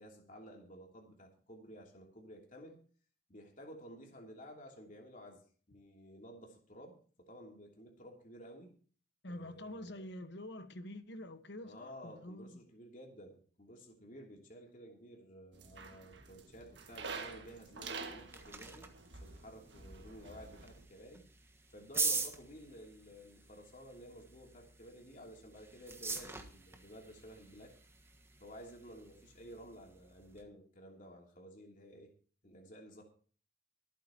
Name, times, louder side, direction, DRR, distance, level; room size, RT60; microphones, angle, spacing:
voice 1, 0.0-2.8 3.3-8.7 9.3-10.1 11.6-18.9 19.2-21.3 21.7-27.7 28.4-32.1 32.4-33.0, equal, 40° left, 3.0 m, -53 dB
voice 2, 9.2-12.6, left 1 dB, 55° left, 1.3 m, -46 dB
sound 1, 15.5-20.8, right 4 dB, 60° right, 1.9 m, -48 dB
sound 2, 17.9-30.4, right 4 dB, 10° right, 1.3 m, -44 dB
24.5 x 9.2 x 2.9 m
head